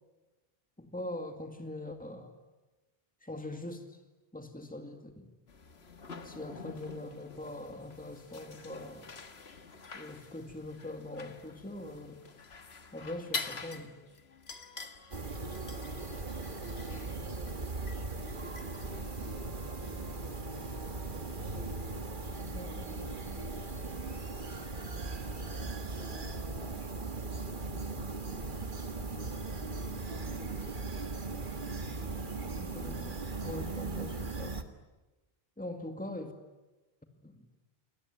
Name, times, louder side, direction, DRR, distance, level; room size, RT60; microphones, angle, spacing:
voice 1, 0.8-2.4 3.2-4.0 4.3-5.3 6.2-9.1 9.9-12.2 12.9-14.0 22.5-22.9 32.6-34.6 35.6-36.3 37.2-37.5, left 1 dB, 10° left, 5 dB, 2.2 m, -42 dB
sound 1, 5.5-19.4, left 4 dB, 85° left, 1.8 m, -46 dB
Wind instrument woodwind instrument, 14.5-17.0 17.6-22.3 22.9-28.3, right 2 dB, 20° right, 5.9 m, -59 dB
sound 2, 15.1-34.6, right 3 dB, 55° right, 1.9 m, -38 dB
voice 2, 15.4-20.7 21.5-23.6 23.8-24.5 25.9-29.4 30.1-31.2 31.9-32.6 33.4-33.7, equal, 60° left, 4 dB, 3.2 m, -53 dB
28.0 x 21.0 x 9.5 m, 1.1 s
omnidirectional pair, 1.0 m